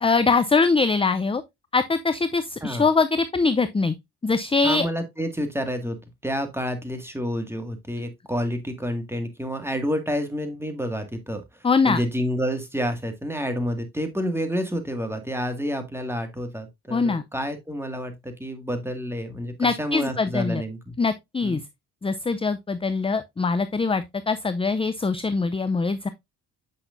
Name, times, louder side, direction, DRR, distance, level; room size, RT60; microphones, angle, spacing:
voice 1, 0.0-1.4 1.7-3.9 4.2-4.9 11.6-12.0 16.9-17.2 19.6-20.6 21.0-21.6 22.0-26.1, left 4 dB, 15° left, 0.4 m, -22 dB
voice 2, 4.6-11.4 11.9-20.9 21.4-21.6, equal, 5° right, 1.9 m, -29 dB
8.1 x 5.6 x 2.5 m
cardioid pair, 65°, 39 cm